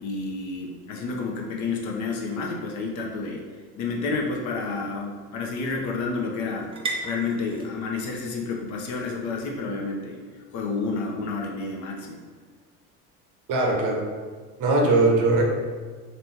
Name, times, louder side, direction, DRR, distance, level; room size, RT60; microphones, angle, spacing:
voice 1, 0.0-3.4 3.8-6.7 7.0-10.2 10.5-12.2, left 4 dB, 40° left, 0 dB, 0.6 m, -30 dB
sound 1, 3.6-11.1, right 3 dB, 15° right, 0.4 m, -41 dB
voice 2, 13.5-14.0 14.6-15.4, right 2 dB, 40° right, 0 dB, 0.9 m, -20 dB
4.2 x 3.1 x 2.8 m, 1.5 s
figure-of-eight pair, 70°, 46 cm